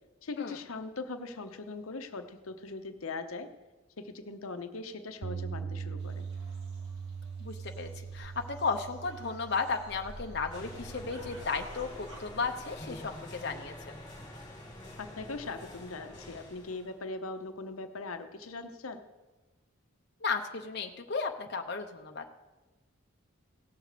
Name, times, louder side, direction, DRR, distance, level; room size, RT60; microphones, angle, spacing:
voice 1, 0.2-3.5 4.0-6.2 15.0-19.0, left 3 dB, 90° left, 8 dB, 0.8 m, -40 dB
Bass guitar, 5.2-11.5, right 6 dB, 55° right, 0.3 m, -41 dB
sound 1, 6.0-12.3, equal, 85° right, 2.0 m, -51 dB
voice 2, 7.4-13.7 20.2-22.3, left 4 dB, 50° left, 4 dB, 0.7 m, -34 dB
sound 2, 10.5-17.1, left 1 dB, 20° left, 2.2 m, -47 dB
17.0 x 6.6 x 4.9 m, 1.2 s
head